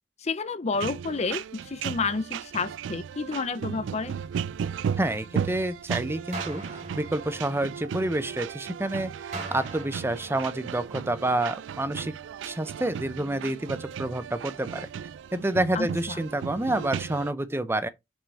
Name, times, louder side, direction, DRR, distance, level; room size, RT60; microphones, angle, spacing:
voice 1, 0.2-4.2 15.7-16.3, left 4 dB, 35° left, 0.5 m, -30 dB
sound 1, 0.7-17.3, right 7 dB, 80° right, 0.3 m, -35 dB
voice 2, 5.0-9.1 9.5-12.1 12.4-14.9 15.3-17.9, right 1 dB, 15° right, 0.6 m, -28 dB
sound 2, 6.3-8.4 9.3-11.4, right 2 dB, 40° right, 2.5 m, -41 dB
5.7 x 5.6 x 4.1 m
head